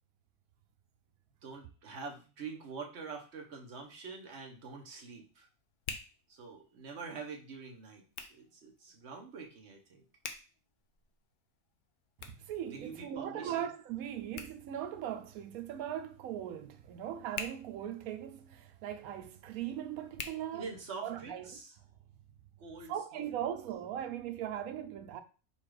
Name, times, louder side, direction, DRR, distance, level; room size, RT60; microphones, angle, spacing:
voice 1, 1.4-5.5 6.3-10.0 12.7-13.7 20.5-21.7 22.6-23.2, right 4 dB, 55° right, 1.1 m, -46 dB
Hands, 3.6-21.3, left 5 dB, 70° left, 0.4 m, -51 dB
voice 2, 12.3-20.6 21.0-21.6 22.9-25.2, right 10 dB, 85° right, 1.0 m, -39 dB
4.1 x 2.4 x 4.6 m
omnidirectional pair, 1.5 m